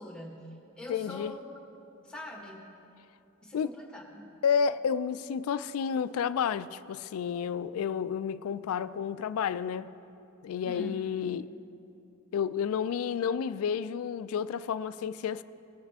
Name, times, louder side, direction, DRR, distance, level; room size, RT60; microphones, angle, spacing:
voice 1, 0.0-1.5 2.0-2.7 3.4-4.2 10.6-11.0, left 1 dB, 5° left, 1.4 m, -43 dB
voice 2, 0.9-1.3 3.5-3.7 4.4-9.9 10.4-11.5 12.3-15.4, left 7 dB, 80° left, 0.3 m, -30 dB
19.0 x 7.2 x 3.5 m
head